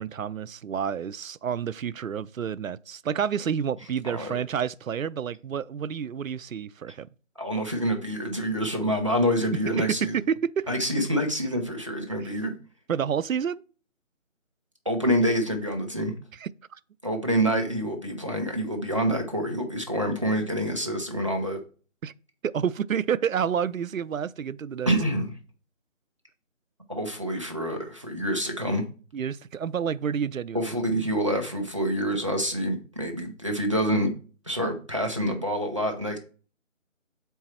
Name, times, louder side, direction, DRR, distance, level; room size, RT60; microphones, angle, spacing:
voice 1, 0.0-7.1 9.8-10.7 12.2-12.3 12.9-13.6 16.3-16.8 22.0-22.1 22.4-24.9 29.1-30.8, right 8 dB, 90° right, 0.5 m, -29 dB
voice 2, 4.0-4.4 7.4-10.2 10.7-12.5 14.8-16.1 17.0-21.6 24.9-25.3 26.9-28.8 30.5-34.1 34.5-36.2, equal, 25° right, 0.8 m, -27 dB
6.9 x 4.6 x 4.3 m
figure-of-eight pair, 170°, 39 cm